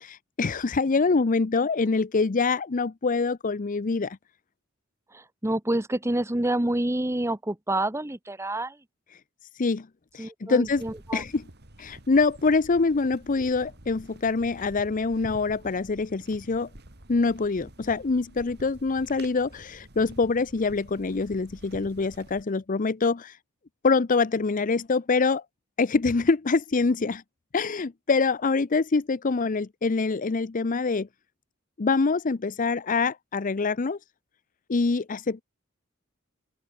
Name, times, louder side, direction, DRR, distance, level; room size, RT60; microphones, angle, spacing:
voice 1, 0.0-4.2 9.6-9.9 10.1-10.8 11.1-11.5 11.8-16.7 17.1-23.3 23.8-25.4 25.8-27.2 27.5-31.1 31.8-34.0 34.7-35.4, left 4 dB, 40° left, 0.6 m, -25 dB
voice 2, 5.1-8.8 10.2-11.2, right 1 dB, 15° right, 1.0 m, -28 dB
sound 1, 10.6-22.4, right 1 dB, 55° right, 3.4 m, -48 dB
open air
head